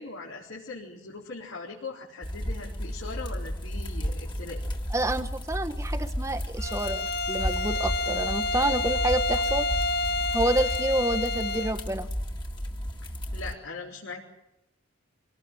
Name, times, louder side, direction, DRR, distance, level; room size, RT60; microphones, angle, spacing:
voice 1, 0.0-4.6 13.0-14.2, left 3 dB, 80° left, -4 dB, 4.2 m, -40 dB
sound 1, 2.2-13.5, equal, 20° left, 2.0 m, -33 dB
voice 2, 4.9-9.7 10.3-12.1, right 1 dB, 15° right, 8 dB, 1.0 m, -28 dB
Bowed string instrument, 6.6-11.8, left 3 dB, 55° left, 0.8 m, -29 dB
25.5 x 18.0 x 7.6 m, 0.89 s
head